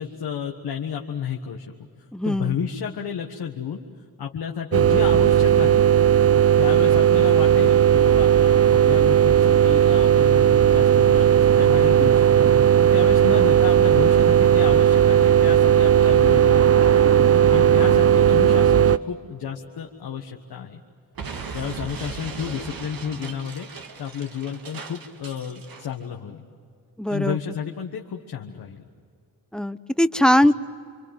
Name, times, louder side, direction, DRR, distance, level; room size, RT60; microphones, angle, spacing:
voice 1, 0.0-1.6 2.2-3.8 4.2-5.9 6.6-12.5 12.8-17.2 17.5-20.8 21.5-23.7 24.0-26.4 27.1-28.8, left 7 dB, 85° left, 2 dB, 1.5 m, -31 dB
voice 2, 2.1-2.6 27.0-27.4 29.5-30.5, left 1 dB, ahead, 12 dB, 0.9 m, -20 dB
sound 1, 4.7-19.0, right 9 dB, 40° right, 0.8 m, -16 dB
Explosion, 21.2-25.9, right 5 dB, 70° right, 1.9 m, -37 dB
28.0 x 24.5 x 7.7 m, 2.2 s
cardioid pair, 65°, 37 cm